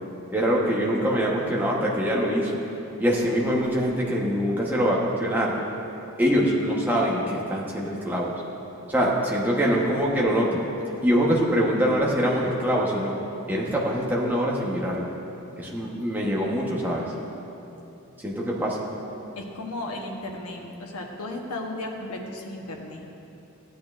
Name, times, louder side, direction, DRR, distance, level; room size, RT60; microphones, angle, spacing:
voice 1, 0.3-2.6 3.0-5.6 6.2-8.3 8.9-10.6 11.0-13.1 13.5-15.1 15.6-17.1 18.2-18.9, equal, 10° right, -4 dB, 1.1 m, -24 dB
voice 2, 19.4-23.0, left 2 dB, 85° left, 1 dB, 1.1 m, -35 dB
15.0 x 8.6 x 2.5 m, 3.0 s
head